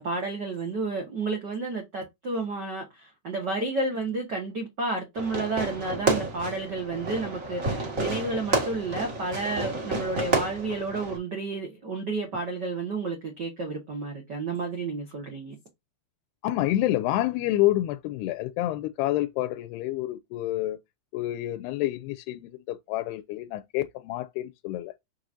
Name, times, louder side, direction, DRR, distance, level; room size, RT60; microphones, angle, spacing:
voice 1, 0.0-15.6, right 3 dB, 90° right, 0.9 m, -31 dB
Fireworks, 5.1-11.2, right 2 dB, 35° right, 1.3 m, -30 dB
voice 2, 16.4-20.8 21.1-24.9, left 15 dB, 85° left, 2.6 m, -28 dB
6.6 x 6.1 x 2.7 m
omnidirectional pair, 4.8 m